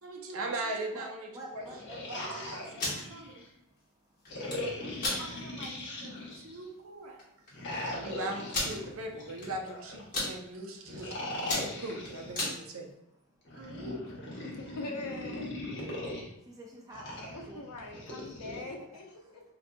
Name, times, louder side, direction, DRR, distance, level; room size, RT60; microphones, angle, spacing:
voice 1, 0.0-1.8 2.1-3.4 5.2-7.3 7.9-11.2 11.6-12.9 13.6-14.4 15.6-16.2, right 2 dB, 65° right, 2 dB, 0.6 m, -40 dB
voice 2, 0.9-2.9 4.4-5.5 14.2-14.6 15.1-15.2 16.5-17.6 18.6-18.7, right 1 dB, 15° right, -3 dB, 0.5 m, -49 dB
sound 1, 1.5-3.5 4.3-6.6 7.5-10.0 10.8-12.5 13.4-16.2 16.9-18.6, left 1 dB, 55° left, 0.8 m, -40 dB
sound 2, 2.6-3.0 4.3-4.6 5.0-5.2 5.7-5.8 6.2-6.4 7.2-7.3 7.5-7.6 8.5-8.8 9.4-9.7 10.0-10.3 10.9-11.1 11.4-12.6, left 2 dB, 35° left, 1.3 m, -32 dB
voice 3, 14.4-15.5 16.0-16.1 17.3-19.4, left 2 dB, 80° left, 1 dB, 0.6 m, -42 dB
3.8 x 2.7 x 2.2 m, 0.84 s
head